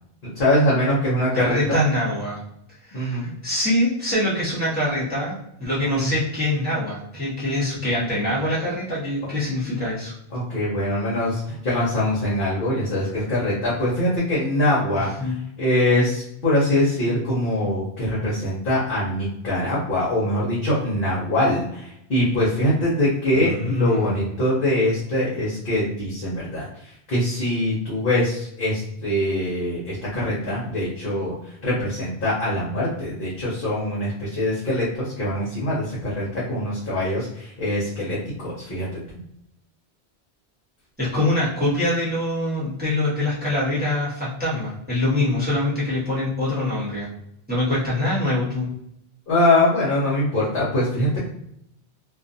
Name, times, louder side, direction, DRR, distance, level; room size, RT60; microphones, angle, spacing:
voice 1, 0.2-1.8 2.9-3.2 5.8-6.1 10.3-39.2 49.3-51.3, left 1 dB, 55° left, -7 dB, 1.0 m, -23 dB
voice 2, 1.3-2.4 2.9-10.1 15.2-15.3 23.3-24.1 41.0-47.1 47.5-48.7, left 1 dB, 10° right, -8 dB, 0.9 m, -24 dB
2.5 x 2.3 x 2.5 m, 0.76 s
omnidirectional pair, 1.1 m